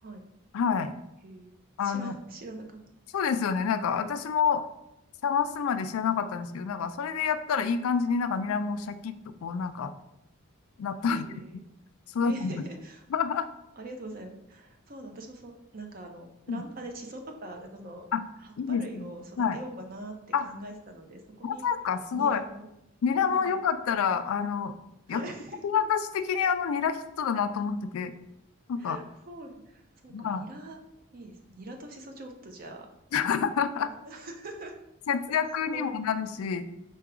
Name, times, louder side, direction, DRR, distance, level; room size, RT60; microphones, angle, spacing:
voice 1, 0.5-0.9 1.8-2.1 3.1-4.7 5.2-9.9 10.8-11.4 12.1-12.5 13.1-13.5 16.5-16.6 18.1-18.2 18.6-19.1 19.4-19.6 20.3-20.5 21.4-22.4 23.0-24.7 25.1-25.2 25.6-28.1 28.7-29.0 30.1-30.4 33.1-33.9 35.1-36.6, left 6 dB, 80° left, 11 dB, 0.3 m, -28 dB
voice 2, 1.2-1.5 1.8-2.8 11.1-11.6 12.2-13.1 13.8-18.1 18.4-21.7 22.1-22.7 23.4-23.6 25.1-25.6 28.8-30.8 31.1-32.9 33.8-34.7 35.7-36.0, right 1 dB, 40° right, 4 dB, 0.6 m, -43 dB
4.6 x 2.3 x 4.8 m, 0.85 s
head